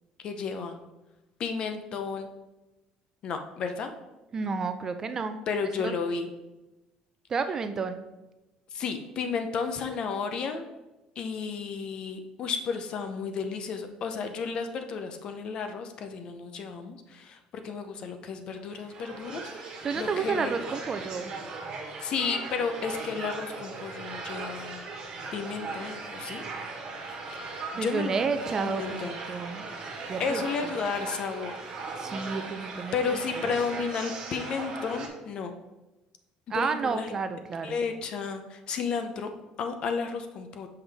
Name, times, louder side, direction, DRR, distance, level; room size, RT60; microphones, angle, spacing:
voice 1, 0.2-0.8 1.4-2.3 3.2-3.9 5.5-6.3 8.7-10.6 11.2-20.5 22.0-24.8 25.3-26.4 27.3-28.2 28.6-29.2 30.2-31.5 32.9-35.5 36.5-37.1 37.6-39.3 39.6-40.7, left 5 dB, 45° left, 7 dB, 0.6 m, -33 dB
voice 2, 4.3-5.4 5.8-6.0 7.3-8.0 19.8-21.3 27.7-29.7 30.1-30.7 32.0-33.2 36.5-37.8, right 5 dB, 25° right, 9 dB, 0.5 m, -31 dB
sound 1, 18.6-35.1, right 3 dB, 45° right, 1.4 m, -38 dB
7.0 x 5.6 x 3.5 m, 1.0 s
cardioid pair, 150°, 2 cm